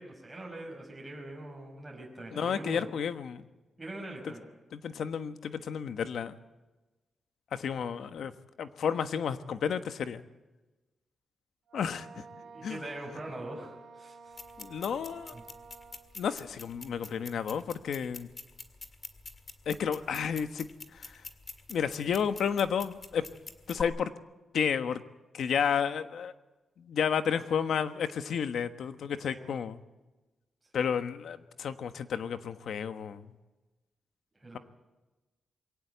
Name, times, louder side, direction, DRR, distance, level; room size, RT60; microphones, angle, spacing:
voice 1, 0.0-2.9 3.8-4.5 12.4-14.4 15.3-15.4 29.3-29.6 30.7-30.9 34.4-34.6, right 1 dB, 15° right, -2 dB, 5.2 m, -43 dB
voice 2, 2.3-3.4 4.2-4.3 4.7-6.3 7.5-8.3 8.6-10.3 11.7-12.2 12.6-12.8 14.6-15.3 16.2-18.3 19.6-21.2 21.7-23.2 23.7-24.1 24.5-25.0 25.3-26.3 26.8-29.8 30.7-33.3, left 7 dB, 75° left, 10 dB, 1.3 m, -32 dB
Wind instrument woodwind instrument, 11.7-16.2, right 4 dB, 90° right, 2.4 m, -51 dB
sound 1, 14.3-23.8, left 4 dB, 35° left, 1.8 m, -46 dB
22.5 x 17.5 x 8.1 m, 1.1 s
wide cardioid pair, 140°, 0 cm